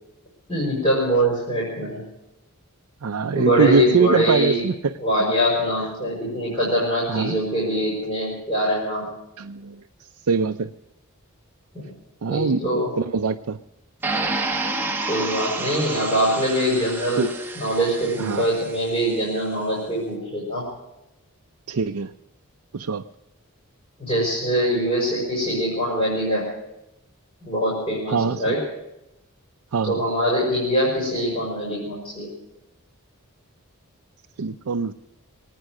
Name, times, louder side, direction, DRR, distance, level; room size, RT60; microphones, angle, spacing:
voice 1, 0.5-2.0 3.3-4.6 5.0-9.1 11.7-11.9 12.3-12.9 15.1-17.3 17.5-20.7 24.0-26.5 27.4-28.6 29.8-32.3, equal, 25° left, -5 dB, 5.7 m, -23 dB
voice 2, 3.0-5.3 7.1-7.4 9.4-9.8 10.3-10.7 12.2-13.6 17.2-17.3 18.2-18.4 21.7-22.1 22.7-23.0 28.1-28.6 29.7-30.0 34.4-34.9, right 5 dB, 75° right, 5 dB, 0.5 m, -23 dB
sound 1, 14.0-19.0, right 3 dB, 10° right, 1.2 m, -29 dB
23.5 x 9.4 x 6.4 m, 0.90 s
head